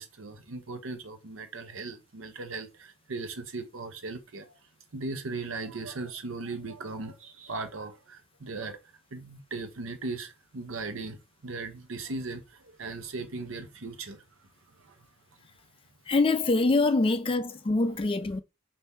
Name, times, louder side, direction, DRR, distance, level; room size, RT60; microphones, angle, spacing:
voice 1, 0.0-4.6 4.9-8.8 9.1-14.5 14.8-15.1, right 3 dB, 80° right, 0.8 m, -38 dB
voice 2, 16.1-18.4, left 3 dB, 25° left, 0.4 m, -24 dB
3.5 x 2.6 x 4.2 m
head